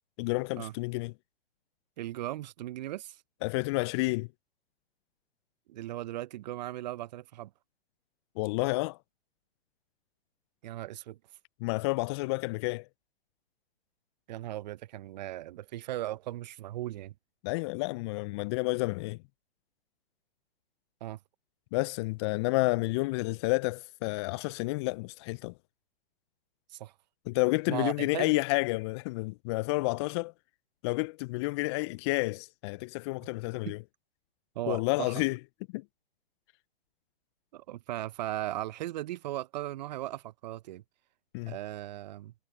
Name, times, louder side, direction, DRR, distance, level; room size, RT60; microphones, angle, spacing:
voice 1, 0.2-1.1 3.4-4.3 8.4-9.0 11.6-12.9 17.4-19.2 21.7-25.5 27.3-30.3 30.8-33.8 34.7-35.4 35.7-35.8 41.3-41.5, left 24 dB, 25° left, 0.6 m, -30 dB
voice 2, 2.0-3.2 5.7-7.5 10.6-11.2 14.3-17.1 21.0-21.2 26.7-26.9 27.7-28.3 33.6-33.8 34.5-35.1 37.5-40.8 41.5-42.3, right 14 dB, 45° right, 0.9 m, -37 dB
figure-of-eight pair, 125°, 31 cm